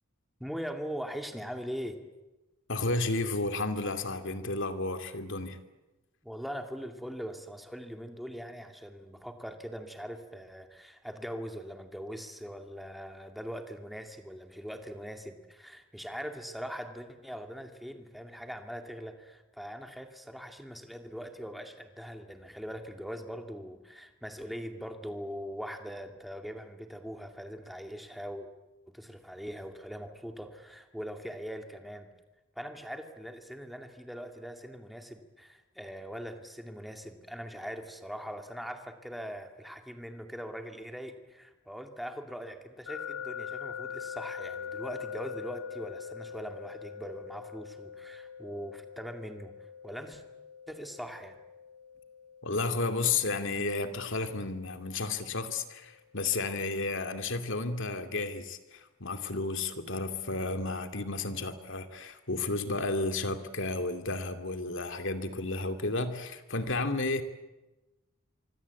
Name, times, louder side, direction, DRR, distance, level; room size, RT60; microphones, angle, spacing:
voice 1, 0.4-2.0 6.2-28.5 28.9-32.1 32.6-49.5 49.8-50.2 50.7-51.4, equal, ahead, 5 dB, 2.4 m, -41 dB
voice 2, 2.7-5.6 52.4-67.2, left 3 dB, 60° left, 8 dB, 2.4 m, -32 dB
sound 1, 42.9-55.8, left 7 dB, 85° left, 2.4 m, -44 dB
25.5 x 24.5 x 8.4 m, 1.1 s
head